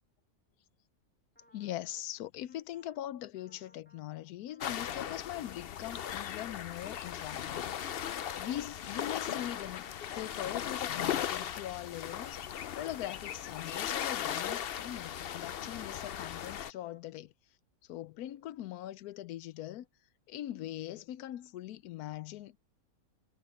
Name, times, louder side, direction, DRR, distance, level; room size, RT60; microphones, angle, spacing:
sound 1, 1.4-2.1 2.5-3.1 3.4-4.1 4.5-5.1 5.4-12.4 12.9-16.1 16.5-17.1, equal, 5° left, 3.1 m, -66 dB
voice 1, 1.5-7.7 8.1-12.4 12.8-17.3 17.9-19.9 20.3-22.6, left 13 dB, 90° left, 1.1 m, -41 dB
sound 2, 4.6-16.7, left 10 dB, 55° left, 0.6 m, -38 dB
omnidirectional pair, 1.6 m